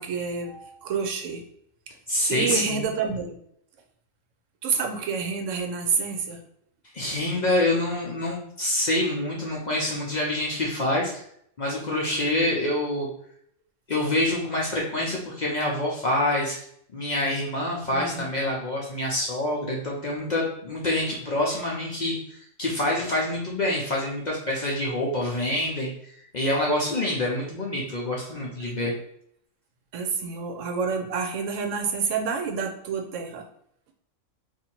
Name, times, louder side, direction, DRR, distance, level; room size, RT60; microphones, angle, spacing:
voice 1, 0.0-1.4 2.3-3.4 4.6-6.4 17.9-18.3 28.6-28.7 29.9-33.4, right 5 dB, 75° right, 4 dB, 1.0 m, -28 dB
voice 2, 2.1-2.9 6.9-11.2 11.6-13.1 13.9-16.6 16.9-25.9 26.3-28.9, left 1 dB, 45° left, -3 dB, 0.6 m, -26 dB
2.7 x 2.5 x 4.2 m, 0.69 s
omnidirectional pair, 1.3 m